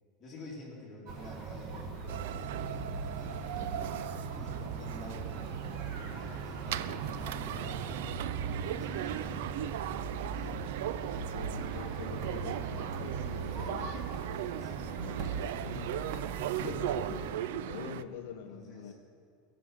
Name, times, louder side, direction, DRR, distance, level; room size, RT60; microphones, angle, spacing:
voice 1, 0.2-9.7 10.3-10.5 14.6-15.5 15.9-16.1 16.6-16.7 17.1-17.2 18.3-18.9, equal, 15° left, -4 dB, 2.5 m, -49 dB
sound 1, 1.1-17.3, right 4 dB, 35° right, 1.3 m, -40 dB
sound 2, 2.1-18.0, right 11 dB, 75° right, 0.4 m, -38 dB
Livestock farm animals working animals, 2.6-10.9, right 4 dB, 20° right, 0.6 m, -52 dB
voice 2, 11.2-14.0 14.9-16.0 16.3-17.3 17.6-18.9, left 9 dB, 65° left, 6 dB, 0.7 m, -45 dB
17.5 x 5.9 x 7.8 m, 2.3 s
supercardioid pair, 180°, 0 cm